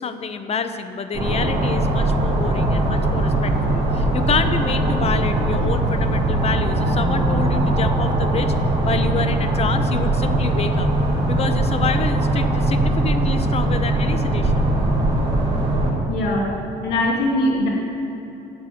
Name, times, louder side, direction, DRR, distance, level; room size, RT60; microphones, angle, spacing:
voice 1, 0.0-8.5 8.8-10.9 11.3-14.7, left 5 dB, 40° left, 10 dB, 0.8 m, -27 dB
sound 1, 1.1-15.9, right 1 dB, 25° right, 3.1 m, -20 dB
voice 2, 16.1-16.5 16.8-17.7, left 1 dB, 85° left, -1 dB, 2.4 m, -21 dB
9.1 x 8.1 x 8.3 m, 2.8 s
cardioid pair, 110°, 17 cm